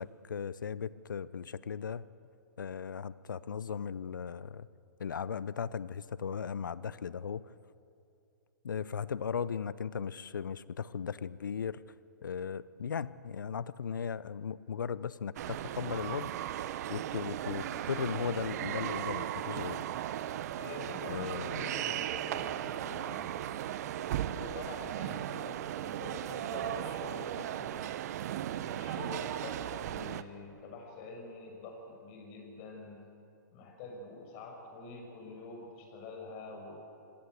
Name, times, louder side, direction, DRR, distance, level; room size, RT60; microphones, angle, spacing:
voice 1, 0.0-2.0 2.6-4.7 5.0-7.4 8.6-11.8 12.2-16.3 16.9-19.8 21.1-21.7, left 7 dB, 80° left, 18 dB, 0.8 m, -37 dB
sound 1, 15.4-30.2, right 11 dB, 55° right, 0.9 m, -37 dB
voice 2, 20.6-23.4 24.3-27.8 28.5-33.1 33.5-36.7, left 3 dB, 40° left, 2 dB, 6.2 m, -46 dB
26.0 x 17.5 x 8.1 m, 2.6 s
hypercardioid pair, 120°, 10 cm